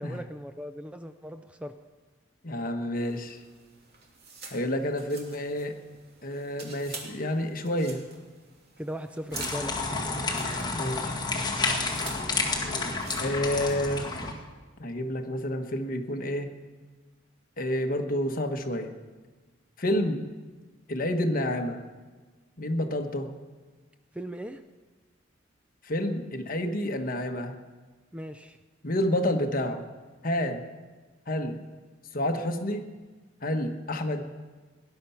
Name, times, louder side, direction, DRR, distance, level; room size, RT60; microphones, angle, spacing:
voice 1, 0.0-1.8 8.8-9.8 24.1-24.6 28.1-28.6, equal, 5° right, 8 dB, 0.4 m, -38 dB
voice 2, 2.4-3.4 4.5-5.7 6.2-8.0 10.7-11.2 13.2-14.1 14.8-16.5 17.6-18.9 19.8-20.2 20.9-21.8 22.6-23.3 25.8-27.6 28.8-29.8 30.2-30.6 31.3-31.6 32.1-32.9 33.4-34.2, left 1 dB, 45° left, 4 dB, 1.3 m, -29 dB
sound 1, 3.0-14.3, right 4 dB, 55° right, 2.8 m, -47 dB
sound 2, 9.3-14.3, left 3 dB, 20° left, 1.9 m, -30 dB
18.5 x 11.0 x 5.8 m, 1.3 s
head